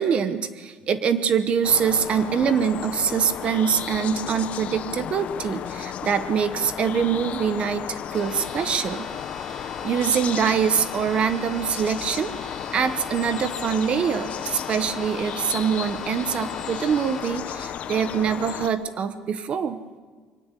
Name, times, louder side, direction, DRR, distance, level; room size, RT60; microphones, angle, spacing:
voice 1, 0.0-9.1 9.8-19.8, right 7 dB, 35° right, 11 dB, 0.9 m, -24 dB
sound 1, 1.6-18.7, left 9 dB, 40° left, 0.9 m, -33 dB
sound 2, 8.1-17.2, left 1 dB, 5° left, 5.8 m, -43 dB
23.5 x 18.5 x 8.2 m, 1.5 s
cardioid pair, 165°, 3 cm